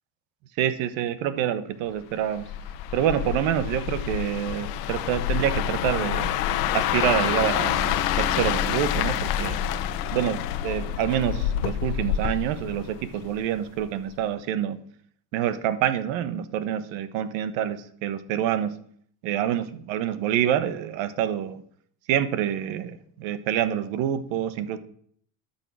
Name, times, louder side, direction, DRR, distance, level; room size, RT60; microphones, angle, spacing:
voice 1, 0.6-2.5 2.9-6.3 6.7-9.6 10.1-14.8 15.3-18.7 19.2-21.6 22.1-24.8, right 10 dB, 70° right, 13 dB, 1.3 m, -27 dB
sound 1, 2.3-13.5 13.8-14.1, left 10 dB, 90° left, 1.1 m, -27 dB
11.5 x 7.0 x 6.2 m, 0.62 s
supercardioid pair, 110°, 46 cm